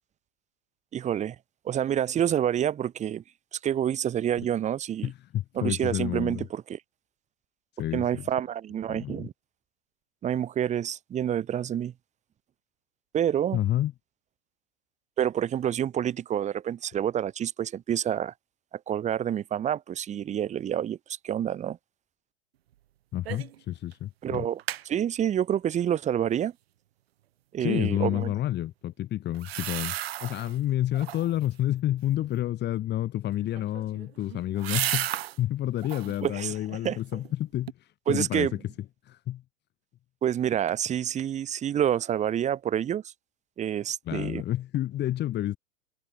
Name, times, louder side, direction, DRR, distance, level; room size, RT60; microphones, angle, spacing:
voice 1, 0.9-1.4 1.6-3.2 3.5-5.1 5.5-6.8 7.9-9.3 10.2-11.9 13.1-13.6 15.2-18.3 18.7-21.0 21.2-21.8 24.2-26.5 27.5-28.3 36.2-37.0 38.1-38.6 40.2-43.1 43.6-44.4, right 10 dB, 20° right, 1.4 m, -28 dB
voice 2, 5.0-6.4 7.8-8.3 8.9-9.3 13.5-13.9 23.1-24.5 27.6-29.9 30.2-38.5 39.1-39.4 44.1-45.6, left 13 dB, 30° left, 5.2 m, -29 dB
sound 1, 23.3-23.6 23.9-24.0 24.3-24.8 29.3-30.6 30.9-31.5 33.4-35.4 35.8-36.2 36.7-37.3 37.7-37.8, right 13 dB, 60° right, 2.8 m, -34 dB
figure-of-eight pair, 105°, 34 cm